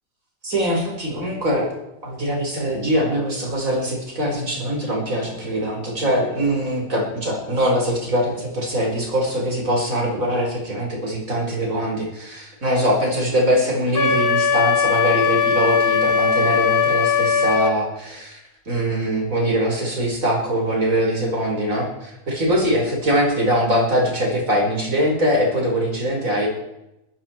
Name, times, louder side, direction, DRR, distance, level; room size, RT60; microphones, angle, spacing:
voice 1, 0.4-1.7 2.0-18.4 18.7-26.5, equal, 45° right, 0 dB, 5.4 m, -22 dB
Wind instrument woodwind instrument, 13.9-17.7, left 6 dB, 35° left, 1.2 m, -19 dB
21.0 x 14.0 x 4.6 m, 0.90 s
omnidirectional pair, 1.9 m